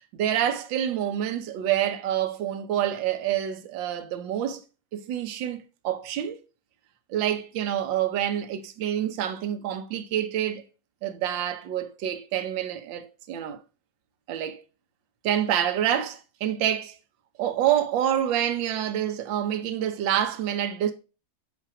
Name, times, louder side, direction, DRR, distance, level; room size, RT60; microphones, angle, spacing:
voice 1, 0.2-4.6 4.9-6.4 7.1-10.6 11.0-13.6 14.3-14.6 15.2-17.0 17.4-20.9, right 10 dB, 70° right, 1.5 m, -27 dB
8.2 x 3.4 x 4.8 m
omnidirectional pair, 2.2 m